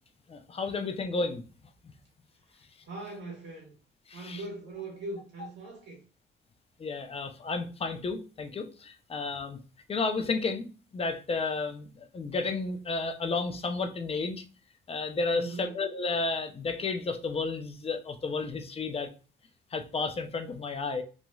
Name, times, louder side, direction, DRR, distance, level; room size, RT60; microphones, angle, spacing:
voice 1, 0.3-1.4 4.1-4.4 6.8-9.6 9.9-10.7 10.9-14.4 14.9-19.1 19.7-21.0, left 3 dB, 30° left, 0.5 m, -32 dB
voice 2, 2.5-3.7 4.1-6.0 15.3-15.7, right 2 dB, 60° right, 1.4 m, -41 dB
3.0 x 2.6 x 2.3 m
cardioid pair, 90°, 20 cm